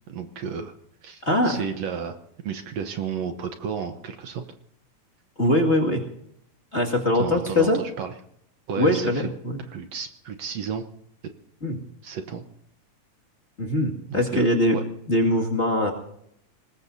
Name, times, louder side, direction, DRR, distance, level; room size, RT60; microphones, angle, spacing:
voice 1, 0.1-0.7 1.0-2.2 2.4-4.4 7.1-8.1 8.7-9.3 9.7-10.9 12.0-12.4 14.1-14.5 14.7-14.8, right 7 dB, 65° right, 7 dB, 2.0 m, -32 dB
voice 2, 1.2-1.6 5.4-6.0 6.7-7.8 8.8-9.6 11.6-11.8 13.6-14.8 15.1-15.9, left 1 dB, 25° left, 0 dB, 2.1 m, -22 dB
25.5 x 20.5 x 2.7 m, 0.71 s
omnidirectional pair, 3.5 m